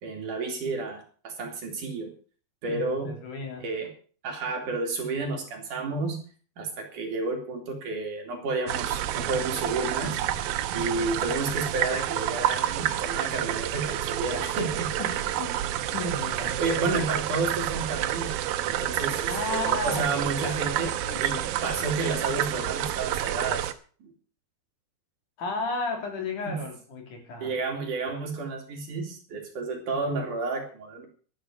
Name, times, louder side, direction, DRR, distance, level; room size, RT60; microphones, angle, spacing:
voice 1, 0.0-2.1 2.6-3.2 3.6-3.9 4.2-6.2 6.6-10.2 10.7-14.9 16.4-18.3 18.6-20.9 21.2-23.7 24.0-24.1 26.5-26.6 27.4-31.1, right 3 dB, 55° right, 2 dB, 4.0 m, -31 dB
voice 2, 2.6-3.6 15.0-15.6 15.9-17.0 19.3-21.5 25.4-27.5, left 2 dB, 55° left, 3 dB, 4.2 m, -34 dB
sound 1, 8.7-23.7, right 12 dB, 75° right, 2.5 m, -29 dB
12.5 x 11.0 x 6.4 m, 0.41 s
omnidirectional pair, 4.5 m